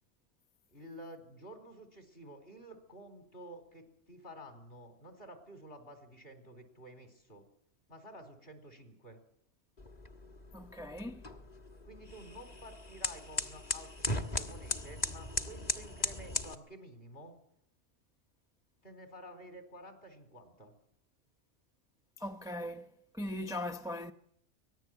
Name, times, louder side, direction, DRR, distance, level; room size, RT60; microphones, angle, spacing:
voice 1, 0.7-7.5 7.9-9.2 11.8-17.3 18.8-20.7, equal, 50° left, 4.7 m, -51 dB
sound 1, 9.8-16.5, left 2 dB, 35° left, 1.6 m, -38 dB
voice 2, 10.5-11.2 22.2-24.1, left 1 dB, 5° right, 0.7 m, -40 dB
25.0 x 19.0 x 8.0 m
omnidirectional pair, 1.2 m